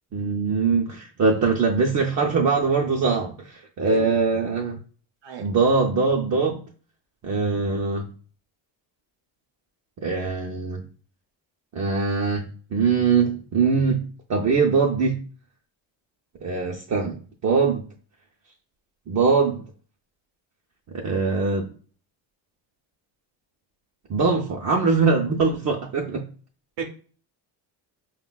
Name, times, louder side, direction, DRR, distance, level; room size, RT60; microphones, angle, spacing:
voice 1, 0.1-4.8 5.4-6.6 7.2-8.1 10.0-10.8 11.7-15.2 16.4-17.9 19.1-19.6 20.9-21.7 24.1-26.3, right 4 dB, 40° right, -1 dB, 0.6 m, -22 dB
voice 2, 3.8-4.1 5.2-5.5 26.8-26.9, right 7 dB, 70° right, 3 dB, 0.7 m, -32 dB
5.0 x 2.2 x 2.2 m, 0.41 s
cardioid pair, 85°, 47 cm